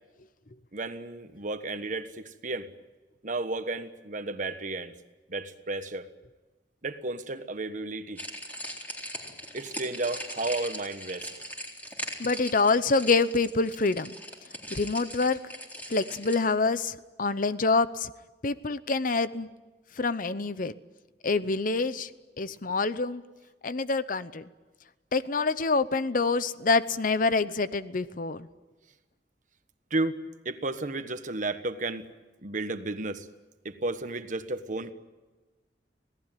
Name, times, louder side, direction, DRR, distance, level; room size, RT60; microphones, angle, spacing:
voice 1, 0.7-2.7 3.2-4.9 5.3-6.1 6.8-8.2 9.5-11.3 29.9-30.2 30.4-32.1 32.4-33.3 33.6-34.9, right 2 dB, 45° right, 1.4 m, -33 dB
sound 1, 8.2-16.4, equal, 10° left, 3.9 m, -40 dB
voice 2, 12.2-14.1 14.7-15.4 15.9-18.1 18.4-19.5 20.0-20.7 21.2-22.1 22.4-23.2 23.6-24.4 25.1-28.5, left 3 dB, 50° left, 0.8 m, -26 dB
26.5 x 18.0 x 9.2 m
head